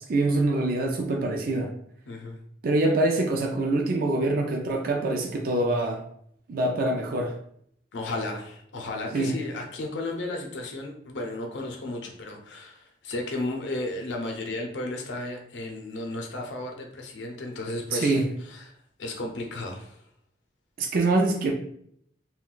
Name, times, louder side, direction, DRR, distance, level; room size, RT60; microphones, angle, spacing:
voice 1, 0.1-1.7 2.6-6.0 6.5-7.4 9.1-9.4 17.9-18.3 20.8-21.5, right 2 dB, 50° right, 2 dB, 0.4 m, -24 dB
voice 2, 2.1-2.4 7.9-18.7 19.0-20.0, left 2 dB, 85° left, 2 dB, 0.6 m, -34 dB
2.4 x 2.2 x 3.7 m, 0.68 s
head